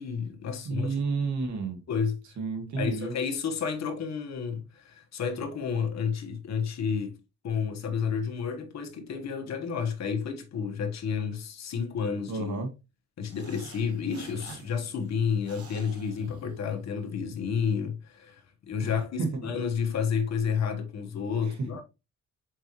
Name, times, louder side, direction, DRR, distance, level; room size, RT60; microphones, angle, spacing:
voice 1, 0.0-1.0 1.9-2.2 2.8-7.2 7.4-12.6 13.2-21.8, left 6 dB, 60° left, 1.4 m, -31 dB
voice 2, 0.6-1.8 2.4-3.1 12.3-12.7 18.8-18.9 19.2-19.3 21.4-21.5, right 4 dB, 70° right, 1.9 m, -30 dB
sound 1, 13.3-17.0, right 4 dB, 50° right, 1.9 m, -49 dB
6.3 x 4.8 x 3.1 m
cardioid pair, 90°, 30 cm